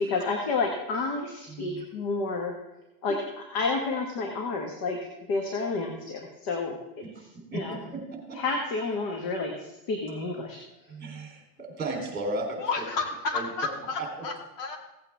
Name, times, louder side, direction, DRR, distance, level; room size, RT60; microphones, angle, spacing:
voice 1, 0.0-2.6 3.0-7.0 7.5-7.8 8.3-10.6, left 3 dB, 50° left, 3 dB, 1.7 m, -30 dB
voice 2, 1.5-1.8 7.5-7.6 7.9-8.4 10.9-12.8 13.3-13.5 13.9-14.1, right 2 dB, 20° right, 1 dB, 3.5 m, -35 dB
voice 3, 12.6-14.8, left 4 dB, 75° left, 2 dB, 2.6 m, -31 dB
16.5 x 8.6 x 3.6 m, 0.94 s
supercardioid pair, 135°, 48 cm